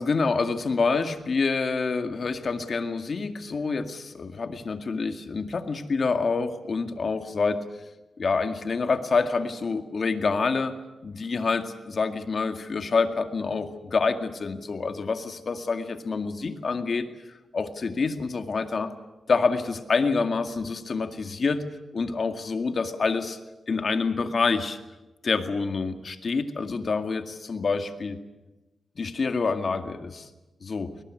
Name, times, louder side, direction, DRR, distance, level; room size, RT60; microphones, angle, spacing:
voice 1, 0.0-7.8 8.2-10.8 11.0-17.1 17.5-18.9 19.3-21.6 21.9-23.4 23.7-24.8 25.2-28.2 29.0-30.3 30.6-30.9, left 4 dB, 55° left, 8 dB, 2.1 m, -27 dB
22.0 x 19.0 x 9.7 m, 1.1 s
cardioid pair, 75°, 0 cm